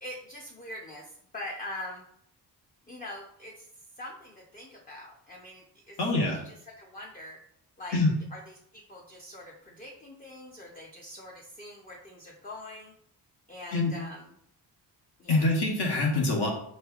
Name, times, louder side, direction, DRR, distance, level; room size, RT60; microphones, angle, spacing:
voice 1, 0.0-2.0 2.9-3.7 4.0-6.0 6.4-7.4 7.8-8.0 8.3-8.4 8.7-12.9 13.5-14.3 15.2-15.5, left 1 dB, 20° left, -2 dB, 0.5 m, -43 dB
voice 2, 6.0-6.4 7.9-8.1 13.7-13.9 15.3-16.5, left 2 dB, 70° left, 0 dB, 1.2 m, -25 dB
5.4 x 3.1 x 2.3 m, 0.70 s
wide cardioid pair, 150°, 42 cm